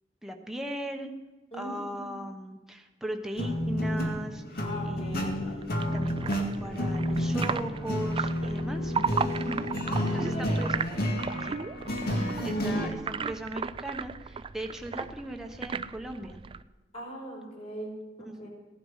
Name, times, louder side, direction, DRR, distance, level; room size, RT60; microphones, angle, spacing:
voice 1, 0.2-1.1 1.5-8.9 10.1-10.8 11.4-11.6 12.0-16.4 18.2-18.5, right 1 dB, 5° right, 2 dB, 1.1 m, -38 dB
voice 2, 1.5-2.2 4.6-5.4 8.6-10.7 16.9-18.5, equal, 35° left, -2 dB, 5.1 m, -41 dB
sound 1, 3.4-12.9, equal, 60° left, 2.2 m, -30 dB
sound 2, 5.6-16.6, right 5 dB, 30° right, 0.4 m, -36 dB
16.5 x 11.0 x 5.7 m, 1.1 s
head